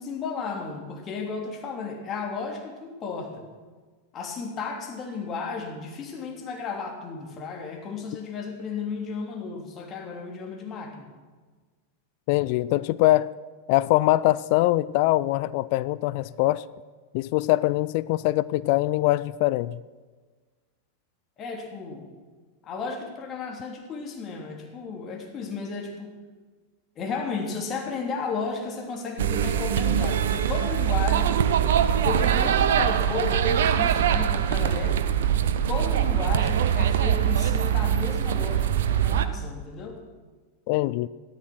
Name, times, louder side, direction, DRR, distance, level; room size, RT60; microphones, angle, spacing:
voice 1, 0.0-3.5 4.1-11.1 21.4-22.1 22.6-26.1 27.0-31.4 32.0-35.0 35.7-40.0, left 5 dB, 30° left, 2 dB, 3.0 m, -34 dB
voice 2, 12.3-13.3 13.7-16.6 17.1-19.8 40.7-41.1, left 17 dB, 45° left, 18 dB, 0.4 m, -23 dB
sound 1, 29.2-39.2, right 9 dB, 60° right, 0.9 m, -23 dB
15.5 x 13.5 x 6.1 m, 1.4 s
figure-of-eight pair, 90°, 0 cm